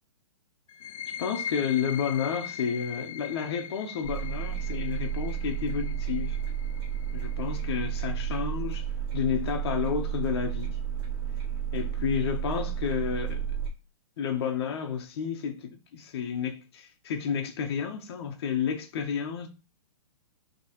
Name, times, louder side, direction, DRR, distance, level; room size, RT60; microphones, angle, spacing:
sound 1, 0.7-8.1, left 9 dB, 60° left, 0.4 m, -40 dB
voice 1, 1.2-6.4 7.1-8.9 9.1-10.8 11.7-13.4 14.2-19.5, left 7 dB, 40° left, 0.9 m, -31 dB
sound 2, 4.0-13.7, right 9 dB, 40° right, 1.7 m, -32 dB
5.8 x 3.0 x 2.9 m
hypercardioid pair, 160°, 20 cm